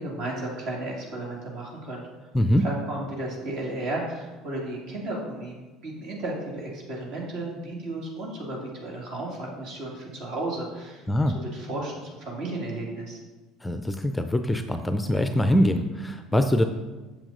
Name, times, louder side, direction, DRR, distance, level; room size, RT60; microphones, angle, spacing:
voice 1, 0.0-2.1 2.6-11.0 11.3-13.2, right 2 dB, 55° right, -2 dB, 2.4 m, -34 dB
voice 2, 2.3-2.7 11.1-11.4 13.6-16.7, equal, 10° left, 8 dB, 0.5 m, -23 dB
7.3 x 7.1 x 3.9 m, 1.2 s
figure-of-eight pair, 60°, 0 cm